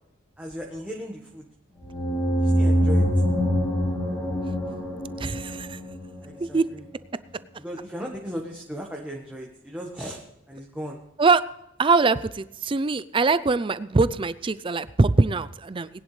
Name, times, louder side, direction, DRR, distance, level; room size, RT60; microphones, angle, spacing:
voice 1, 0.4-1.4 2.4-3.1 6.2-6.8 7.6-10.2 10.5-11.0, equal, 5° right, -1 dB, 1.4 m, -36 dB
sound 1, 1.8-6.4, equal, 15° left, 2.7 m, -24 dB
voice 2, 5.2-5.8 6.4-6.6 11.2-11.4 11.8-15.9, right 3 dB, 25° right, 16 dB, 0.4 m, -22 dB
20.5 x 10.5 x 3.3 m, 0.86 s
head